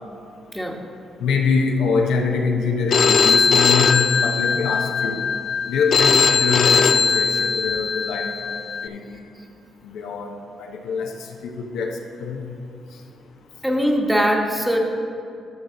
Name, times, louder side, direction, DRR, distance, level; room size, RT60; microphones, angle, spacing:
voice 1, 1.2-5.3 5.7-8.6 8.8-9.2 9.8-11.1 11.6-12.4, left 4 dB, 85° left, 2 dB, 0.8 m, -24 dB
Telephone, 2.9-8.9, left 5 dB, 60° left, 0.4 m, -19 dB
voice 2, 13.6-14.8, equal, 5° right, 1 dB, 1.2 m, -21 dB
12.0 x 6.5 x 3.8 m, 2.5 s
supercardioid pair, 60°, 0 cm